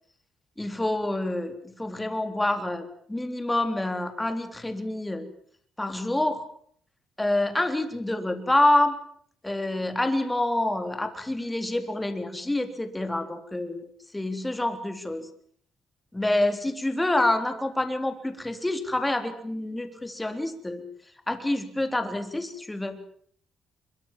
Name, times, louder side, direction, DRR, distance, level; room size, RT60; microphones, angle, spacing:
voice 1, 0.6-5.3 5.8-6.4 7.2-8.9 9.4-13.9 14.1-15.3 16.1-20.8 21.3-23.0, left 1 dB, 10° left, 7 dB, 3.6 m, -27 dB
25.0 x 23.0 x 7.4 m, 0.62 s
cardioid pair, 90°, 0 cm